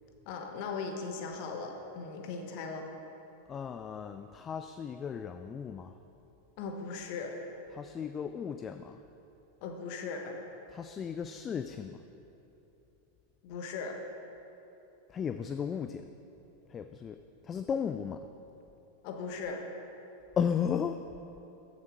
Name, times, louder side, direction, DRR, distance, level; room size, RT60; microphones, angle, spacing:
voice 1, 0.3-2.9 6.6-7.4 9.6-10.4 13.4-14.0 19.0-19.6, left 4 dB, 45° left, 3 dB, 1.2 m, -38 dB
voice 2, 3.5-5.9 7.7-9.0 10.7-12.0 15.1-16.0 16.7-17.2 17.4-18.3 20.4-21.0, left 7 dB, 25° left, 9 dB, 0.3 m, -35 dB
14.0 x 7.2 x 4.5 m, 3.0 s
figure-of-eight pair, 90°, 0 cm